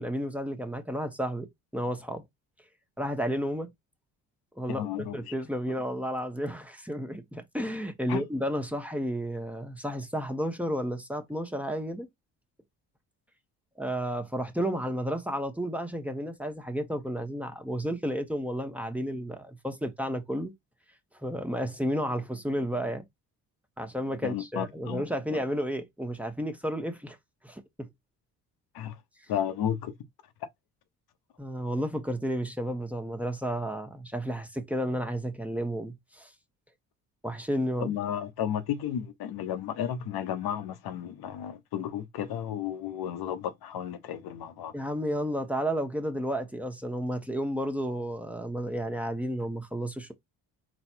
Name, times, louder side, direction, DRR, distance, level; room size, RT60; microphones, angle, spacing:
voice 1, 0.0-2.2 3.0-3.7 4.6-12.1 13.8-20.5 21.2-23.1 23.8-27.2 27.4-27.9 31.4-36.3 37.2-38.0 44.7-50.1, equal, 5° right, 1.1 m, -32 dB
voice 2, 4.7-5.3 8.1-8.2 24.2-25.0 25.3-25.4 28.7-29.0 29.3-29.9 37.8-44.7, left 10 dB, 60° left, 0.9 m, -33 dB
4.1 x 2.3 x 4.4 m
hypercardioid pair, 60°, 41 cm